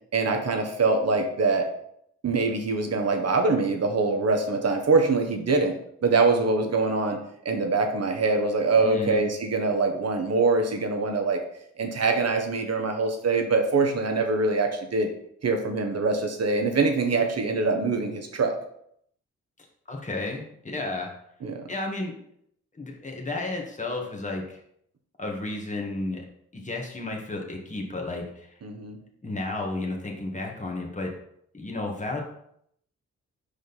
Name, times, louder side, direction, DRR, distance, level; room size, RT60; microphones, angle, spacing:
voice 1, 0.1-1.7 2.2-5.7 6.0-7.2 7.4-11.4 11.8-15.1 15.4-18.5 21.4-21.7 28.6-29.0, right 3 dB, 50° right, 4 dB, 1.3 m, -24 dB
voice 2, 8.8-9.2 19.9-21.1 21.7-22.2 22.7-24.6 25.2-26.2 26.5-28.5 29.2-31.1 31.5-32.2, left 2 dB, 25° left, 0 dB, 1.7 m, -32 dB
5.1 x 5.0 x 4.2 m, 0.70 s
supercardioid pair, 45°, 32 cm